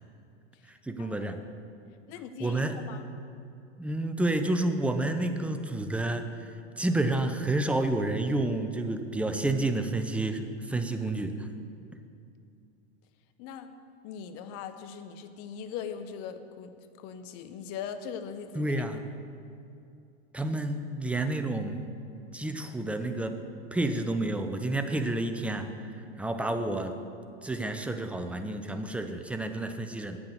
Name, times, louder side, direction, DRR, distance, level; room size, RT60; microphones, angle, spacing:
voice 1, 0.7-1.4 2.4-2.8 3.8-6.5 6.8-11.5 18.5-19.0 20.3-21.8 22.3-23.4 23.7-25.7 26.2-27.0 27.4-30.2, right 2 dB, 5° right, 7 dB, 0.5 m, -30 dB
voice 2, 2.1-3.1 13.4-13.7 14.0-16.7 17.0-18.7, left 7 dB, 50° left, 10 dB, 0.8 m, -40 dB
8.5 x 6.1 x 7.8 m, 2.5 s
hypercardioid pair, 115°, 32 cm